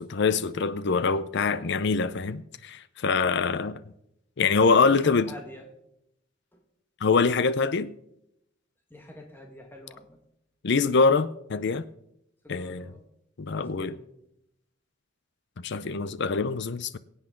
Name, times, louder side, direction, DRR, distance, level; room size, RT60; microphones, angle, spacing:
voice 1, 0.0-3.8 4.4-5.3 7.0-7.9 10.6-11.8 12.5-12.9 13.4-14.0 15.6-17.0, left 4 dB, 60° left, 0.6 m, -24 dB
voice 2, 4.9-5.7 6.5-6.6 8.9-10.2 12.4-13.1 13.5-14.1, left 1 dB, 10° left, 1.8 m, -46 dB
23.0 x 8.1 x 3.8 m
head